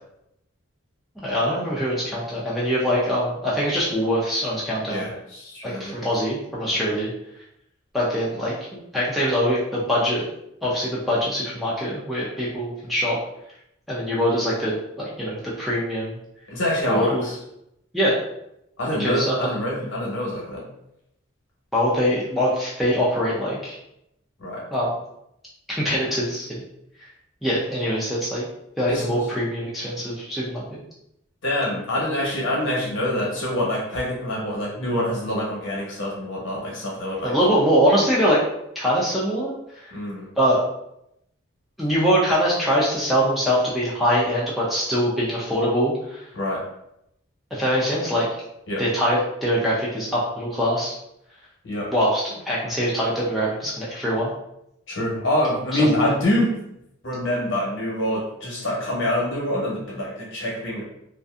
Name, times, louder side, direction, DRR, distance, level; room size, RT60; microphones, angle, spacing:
voice 1, 1.2-5.0 5.6-7.1 7.9-8.5 8.9-10.3 10.6-13.2 13.9-16.1 16.8-17.2 17.9-18.1 19.0-19.4 21.7-23.8 24.7-24.9 25.7-26.6 27.4-28.4 28.8-30.8 37.2-38.4 38.8-39.9 40.4-40.6 41.8-46.2 47.5-48.3 48.8-50.9 51.9-54.3 55.7-56.1, equal, ahead, -7 dB, 0.4 m, -23 dB
voice 2, 4.9-5.9 16.5-17.4 18.8-20.6 24.4-24.6 28.9-29.1 31.4-37.3 39.9-40.3 46.3-46.6 48.7-48.8 51.6-51.9 54.9-56.5 57.0-60.9, left 1 dB, 60° left, -4 dB, 0.9 m, -25 dB
2.6 x 2.4 x 2.3 m, 0.81 s
head